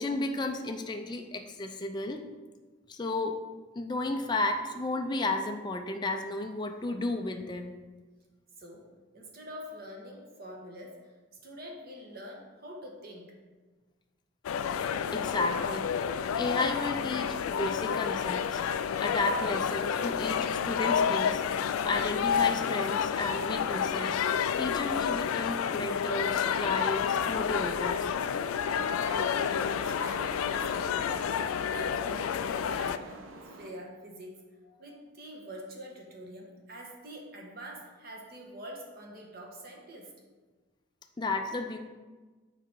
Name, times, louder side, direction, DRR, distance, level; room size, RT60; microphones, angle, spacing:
voice 1, 0.0-2.2 2.9-3.4 3.8-7.7 15.1-18.6 19.0-21.4 21.8-24.2 24.6-28.1 41.2-41.8, left 2 dB, 20° left, 3 dB, 0.4 m, -33 dB
voice 2, 8.6-11.1 11.4-13.4 28.9-31.3 31.6-34.3 34.8-40.1, equal, 45° right, 0 dB, 1.3 m, -45 dB
sound 1, 14.4-33.0, left 7 dB, 90° left, 0.3 m, -30 dB
sound 2, 28.2-33.7, right 2 dB, 70° right, 0.8 m, -46 dB
7.0 x 4.9 x 4.5 m, 1.3 s
head